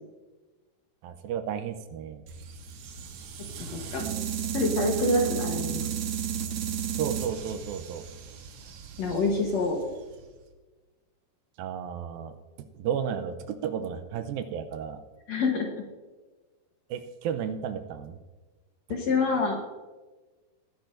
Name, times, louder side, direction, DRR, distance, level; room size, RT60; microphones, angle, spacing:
voice 1, 1.0-2.2 6.9-8.1 11.6-15.0 16.9-18.2, right 8 dB, 85° right, 9 dB, 2.4 m, -33 dB
sound 1, 2.3-10.4, right 8 dB, 65° right, 2.0 m, -34 dB
voice 2, 3.6-4.0 4.5-5.9 9.0-9.8 15.3-15.8 18.9-19.6, left 3 dB, 60° left, 1 dB, 1.9 m, -26 dB
19.5 x 10.0 x 2.6 m, 1.2 s
omnidirectional pair, 4.3 m